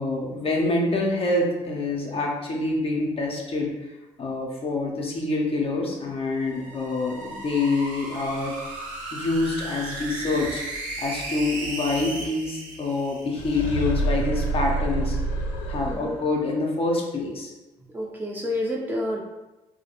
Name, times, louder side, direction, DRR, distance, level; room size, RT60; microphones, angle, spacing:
voice 1, 0.0-3.7 4.2-8.6 9.1-10.6 11.0-15.2 15.7-17.5, left 2 dB, 40° left, -1 dB, 0.6 m, -26 dB
sound 1, 6.3-13.8, right 2 dB, 70° right, 0.5 m, -36 dB
sound 2, 13.3-16.4, right 1 dB, 90° left, 0.4 m, -27 dB
voice 2, 15.9-16.2 17.9-19.2, left 1 dB, 15° right, -3 dB, 0.6 m, -29 dB
2.2 x 2.1 x 2.9 m, 1.0 s
hypercardioid pair, 60°, 14 cm